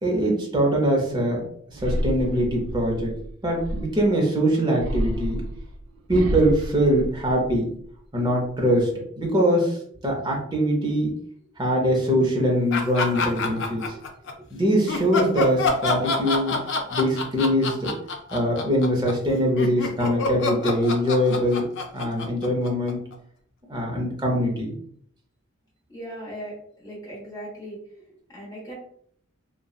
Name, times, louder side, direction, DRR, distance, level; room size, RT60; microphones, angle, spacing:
voice 1, 0.0-1.4 1.7-3.1 3.4-5.4 6.1-7.7 8.1-8.9 9.2-9.8 10.0-11.1 11.6-13.8 14.5-16.5 16.9-17.9 18.3-21.7 21.9-23.0 23.7-24.8, equal, 20° right, -1 dB, 0.6 m, -22 dB
sound 1, 1.8-4.2 4.8-7.8 8.3-8.8, right 1 dB, 75° right, 0.3 m, -30 dB
sound 2, 12.7-14.3 14.9-23.1, left 3 dB, 60° left, 0.4 m, -27 dB
voice 2, 25.9-27.8 28.1-28.7, right 1 dB, 15° left, -6 dB, 1.0 m, -38 dB
2.8 x 2.2 x 2.3 m, 0.64 s
head